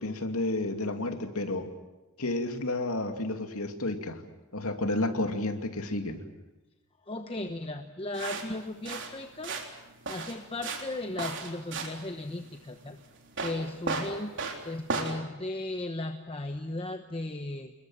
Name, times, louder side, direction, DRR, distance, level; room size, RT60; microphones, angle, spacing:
voice 1, 0.0-1.7 2.2-4.2 4.5-6.2, left 2 dB, 75° left, 6 dB, 2.6 m, -31 dB
voice 2, 7.0-9.6 10.1-13.0 13.4-14.3 14.6-17.7, left 2 dB, 25° left, 6 dB, 1.1 m, -36 dB
sound 1, 8.1-15.2, right 4 dB, 55° right, 3.9 m, -36 dB
29.0 x 21.5 x 7.5 m, 1.1 s
head